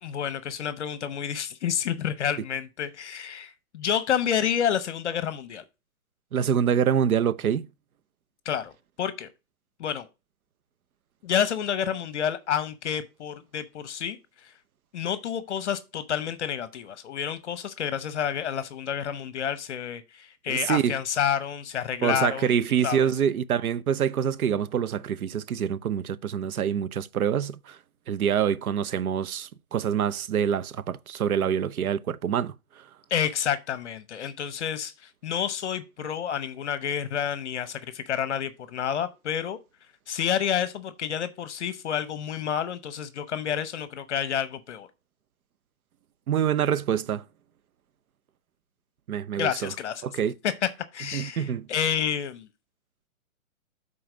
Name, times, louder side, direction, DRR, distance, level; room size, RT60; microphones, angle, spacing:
voice 1, 0.0-5.6 8.4-8.7 9.0-9.3 9.8-10.1 11.2-14.2 14.4-14.5 14.9-22.6 22.8-23.1 33.1-39.6 40.1-44.9 49.3-50.1 50.4-52.5, left 8 dB, 55° left, 0.9 m, -29 dB
voice 2, 6.3-7.7 20.5-21.0 22.0-27.8 28.1-32.5 46.3-47.2 49.1-49.7 50.0-50.3 51.1-51.7, right 8 dB, 80° right, 0.8 m, -26 dB
7.8 x 4.1 x 4.9 m
hypercardioid pair, 155°, 43 cm